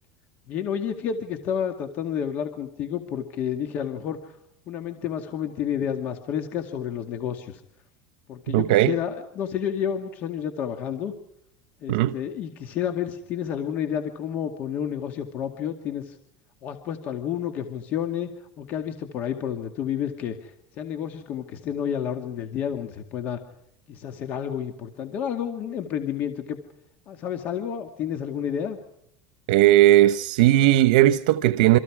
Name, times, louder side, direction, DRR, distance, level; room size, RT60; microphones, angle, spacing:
voice 1, 0.5-4.4 4.7-7.6 8.3-11.1 11.8-16.2 16.6-23.4 23.9-26.6 27.1-28.8, left 9 dB, 40° left, 2.1 m, -30 dB
voice 2, 8.5-8.9 11.9-12.1 29.5-31.8, right 14 dB, 80° right, 1.0 m, -17 dB
28.5 x 25.5 x 4.9 m
cardioid pair, 155°, 4 cm